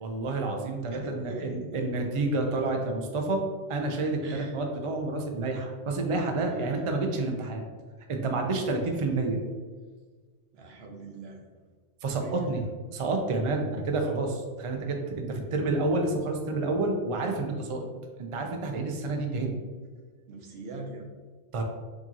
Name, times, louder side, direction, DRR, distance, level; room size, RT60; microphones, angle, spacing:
voice 1, 0.0-3.4 3.7-7.6 8.1-9.4 12.0-12.6 12.9-17.9 18.2-19.6 21.5-21.6, right 2 dB, 50° right, 2 dB, 0.4 m, -29 dB
voice 2, 0.9-1.9 4.2-4.6 6.5-6.8 8.6-8.9 10.5-11.5 12.2-12.7 20.3-21.1, right 2 dB, 65° right, 2 dB, 0.9 m, -42 dB
4.7 x 2.9 x 2.8 m, 1.5 s
omnidirectional pair, 1.2 m